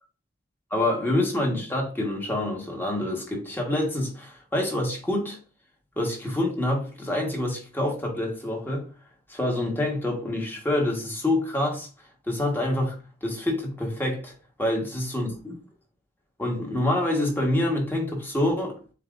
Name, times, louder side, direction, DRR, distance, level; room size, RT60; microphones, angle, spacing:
voice 1, 0.7-5.4 6.0-8.8 9.3-11.9 12.3-12.9 13.2-14.3 14.6-15.5 16.4-18.8, left 1 dB, 10° left, 1.3 m, -26 dB
7.3 x 2.8 x 2.5 m
head